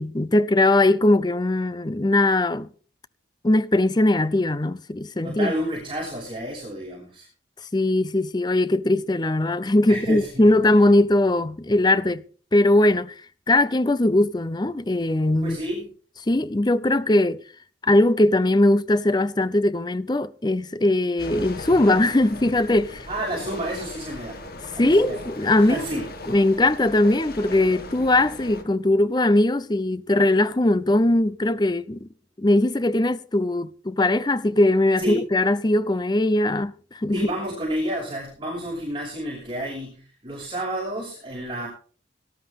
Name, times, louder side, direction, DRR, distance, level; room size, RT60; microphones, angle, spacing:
voice 1, 0.0-2.7 3.4-5.5 7.7-12.2 12.5-13.1 13.5-15.6 16.3-17.4 17.8-23.1 24.8-25.8 26.3-32.1 32.4-37.2, left 1 dB, 25° left, 0.6 m, -20 dB
voice 2, 5.2-7.3 9.9-10.5 15.4-15.9 23.1-24.4 24.7-25.2 25.6-26.0 35.0-35.2 37.1-41.7, right 1 dB, 25° right, 6.2 m, -30 dB
sound 1, 21.2-28.6, left 2 dB, 55° left, 2.0 m, -38 dB
18.0 x 12.5 x 3.7 m
head